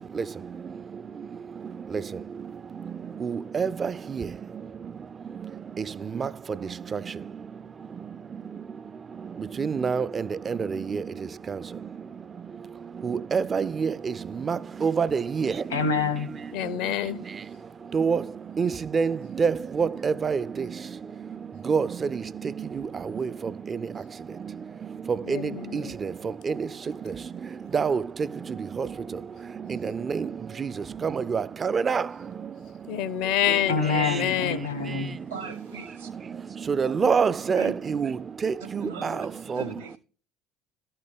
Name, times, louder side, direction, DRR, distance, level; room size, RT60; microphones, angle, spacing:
voice 1, 3.2-3.9 6.2-6.3 9.6-10.0 10.5-11.0 13.0-13.9 14.5-15.5 17.9-18.2 18.6-20.4 21.7-21.9 23.2-23.3 25.3-25.4 25.7-25.8 26.5-26.6 27.7-28.0 28.8-28.9 29.7-30.3 30.6-30.7 31.0-32.0 36.7-38.1 38.4-39.1 39.5-39.6, right 6 dB, 30° right, 0.3 m, -25 dB
voice 2, 15.7-16.3 33.7-35.2, left 4 dB, 85° left, 1.2 m, -26 dB
voice 3, 16.5-17.2 25.2-25.9 32.9-34.6, left 11 dB, 60° left, 0.5 m, -27 dB
voice 4, 35.3-36.1 37.0-37.1 37.5-37.7 38.8-39.3 39.5-40.0, right 4 dB, 85° right, 1.6 m, -39 dB
13.0 x 4.4 x 3.6 m
figure-of-eight pair, 60°, 0 cm